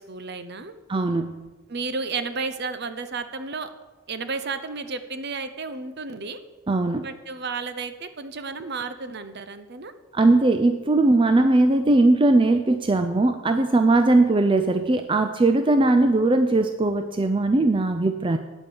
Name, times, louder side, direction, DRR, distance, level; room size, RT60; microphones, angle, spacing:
voice 1, 0.0-0.8 1.7-3.7 4.1-6.4 7.0-9.9, right 4 dB, 50° right, 10 dB, 0.7 m, -32 dB
voice 2, 0.9-1.4 6.7-7.1 10.1-18.4, right 2 dB, 25° right, 8 dB, 0.4 m, -19 dB
9.2 x 8.9 x 6.9 m, 1.3 s
head